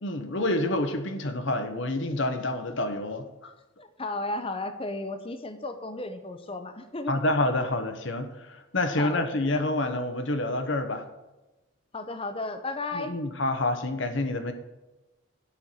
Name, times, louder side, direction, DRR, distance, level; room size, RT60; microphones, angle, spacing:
voice 1, 0.0-3.5 7.1-11.1 12.9-14.5, left 2 dB, 60° left, 8 dB, 1.0 m, -28 dB
voice 2, 3.8-7.2 9.0-9.3 11.9-13.2, left 2 dB, 25° left, 8 dB, 0.7 m, -34 dB
11.5 x 4.5 x 8.3 m, 1.1 s
head